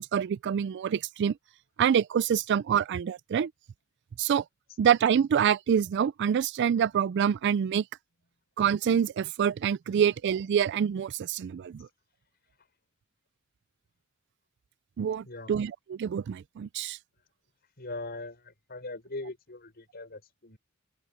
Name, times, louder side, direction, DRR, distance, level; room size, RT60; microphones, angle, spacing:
voice 1, 0.0-1.4 1.8-3.5 4.2-4.4 4.8-7.8 8.6-11.9 15.0-17.0, right 8 dB, 55° right, 0.3 m, -26 dB
voice 2, 15.2-15.5 17.8-20.6, left 2 dB, 50° left, 6.5 m, -40 dB
open air
head